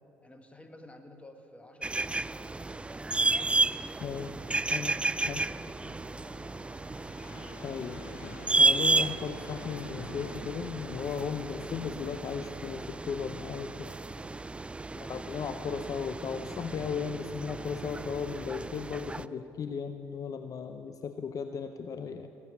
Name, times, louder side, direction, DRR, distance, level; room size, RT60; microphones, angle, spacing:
voice 1, 0.2-3.7 4.4-7.3 14.9-15.1 20.7-20.8, left 1 dB, 15° left, 6 dB, 1.7 m, -54 dB
sound 1, 1.8-19.3, right 3 dB, 15° right, 0.4 m, -32 dB
voice 2, 4.0-4.4 4.7-4.9 5.3-5.4 7.6-13.9 15.0-22.3, left 6 dB, 50° left, 9 dB, 0.6 m, -36 dB
sound 2, 4.1-12.7, left 3 dB, 85° left, 1.6 m, -50 dB
18.5 x 7.5 x 8.4 m, 3.0 s
hypercardioid pair, 60°, 8 cm